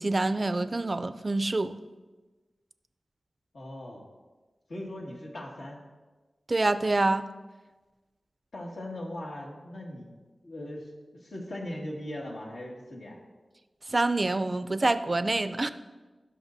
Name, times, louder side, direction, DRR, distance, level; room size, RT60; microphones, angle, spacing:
voice 1, 0.0-1.8 6.5-7.3 13.9-15.7, right 2 dB, 35° right, 12 dB, 0.4 m, -26 dB
voice 2, 3.5-4.0 4.7-5.8 8.5-10.2 10.4-10.9 11.2-13.2, left 1 dB, 85° left, -2 dB, 1.9 m, -39 dB
16.5 x 5.7 x 2.7 m, 1.2 s
wide cardioid pair, 100°, 0 cm